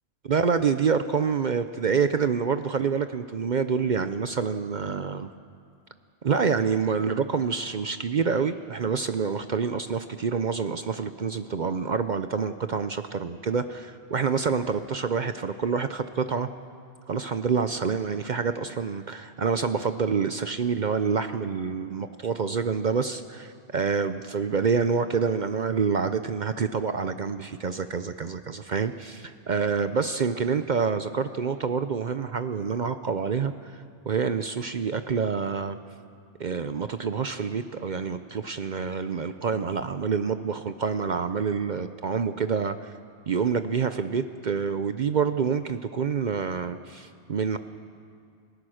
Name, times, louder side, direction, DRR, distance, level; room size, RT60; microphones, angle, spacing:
voice 1, 0.3-5.3 6.2-16.5 17.1-35.8 36.4-42.9 43.3-47.6, right 6 dB, 50° right, 10 dB, 0.7 m, -27 dB
29.0 x 17.0 x 6.4 m, 2.2 s
omnidirectional pair, 1.1 m